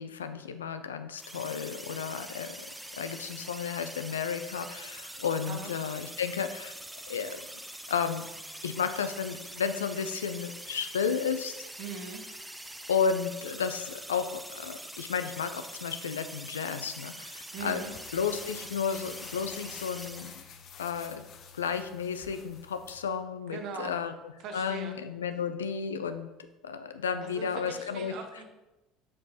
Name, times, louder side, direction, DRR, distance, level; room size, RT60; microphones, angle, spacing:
voice 1, 0.0-2.6 3.0-6.7 7.1-7.4 7.9-8.3 8.6-11.5 12.9-17.8 18.1-20.4 20.8-21.2 21.5-24.1 24.5-26.3 26.6-28.1, left 6 dB, 90° left, 10 dB, 0.4 m, -32 dB
sound 1, 1.2-20.4, right 1 dB, 5° right, 0.6 m, -44 dB
voice 2, 11.8-12.2 17.5-17.9 23.5-24.0 24.4-25.0 27.2-28.4, right 4 dB, 60° right, 4 dB, 1.3 m, -40 dB
sound 2, 17.6-23.0, left 6 dB, 50° left, 0.8 m, -48 dB
7.3 x 4.7 x 4.1 m, 1.0 s
hypercardioid pair, 70°, 0 cm